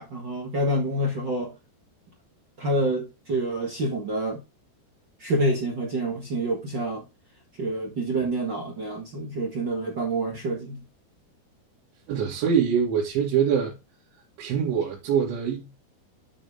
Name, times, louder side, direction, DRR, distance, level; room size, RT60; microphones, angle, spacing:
voice 1, 0.0-1.5 2.6-4.4 5.2-7.0 7.6-10.8, right 1 dB, 70° right, 1.0 m, -27 dB
voice 2, 12.1-13.7 14.4-15.7, right 7 dB, 90° right, 4.6 m, -24 dB
10.0 x 6.2 x 3.6 m
omnidirectional pair, 5.2 m